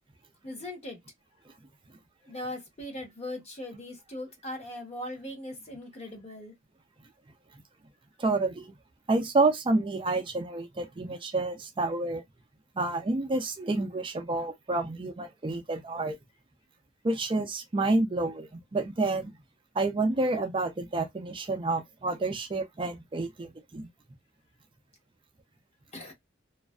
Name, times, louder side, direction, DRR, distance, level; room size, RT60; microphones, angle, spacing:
voice 1, 0.4-1.0 2.3-6.5 25.9-26.1, left 1 dB, 35° left, 0.8 m, -39 dB
voice 2, 8.2-8.7 9.1-12.2 12.8-16.2 17.0-19.3 19.7-23.9, right 2 dB, 25° right, 0.4 m, -29 dB
2.5 x 2.3 x 2.2 m
head